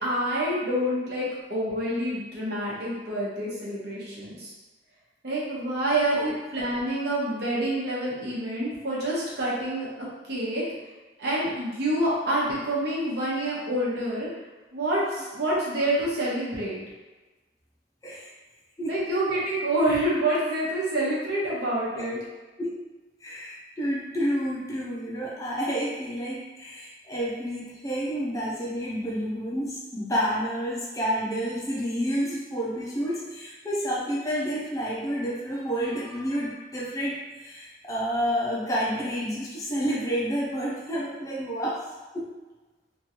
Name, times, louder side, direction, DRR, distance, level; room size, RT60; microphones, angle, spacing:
voice 1, 0.0-4.5 5.2-10.6 11.2-14.3 14.7-16.8 18.9-22.2, right 1 dB, 60° right, -7 dB, 1.0 m, -27 dB
voice 2, 23.2-41.8 42.1-42.3, equal, 20° left, -5 dB, 0.5 m, -29 dB
2.9 x 2.5 x 2.9 m, 1.2 s
head